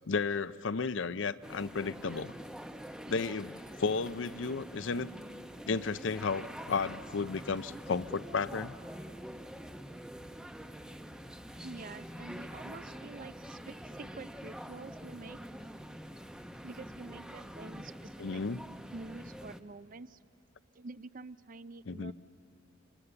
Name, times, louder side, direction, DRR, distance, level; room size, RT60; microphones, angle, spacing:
voice 1, 0.1-2.3 3.1-5.1 5.7-8.7 18.2-18.6 21.9-22.1, left 4 dB, 70° left, 14 dB, 0.6 m, -33 dB
sound 1, 1.4-19.6, equal, 5° right, 0.7 m, -46 dB
voice 2, 11.6-15.4 16.6-18.4 18.9-20.2 20.8-22.1, right 3 dB, 45° right, 14 dB, 0.5 m, -47 dB
29.5 x 24.5 x 6.9 m, 2.6 s
head